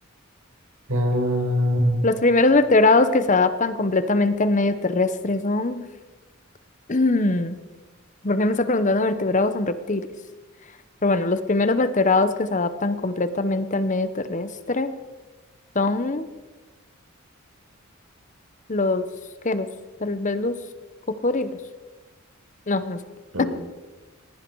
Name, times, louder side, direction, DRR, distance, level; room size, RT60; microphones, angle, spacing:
voice 1, 0.9-2.0 23.3-23.5, equal, 80° right, 1 dB, 5.2 m, -22 dB
voice 2, 2.0-5.8 6.9-7.6 8.2-10.1 11.0-14.9 15.7-16.3 18.7-19.0 19.4-19.7 20.0-20.6 21.1-21.5 22.7-23.0 23.4-23.5, left 2 dB, 35° left, 12 dB, 1.0 m, -21 dB
19.5 x 15.5 x 4.7 m, 1.2 s
head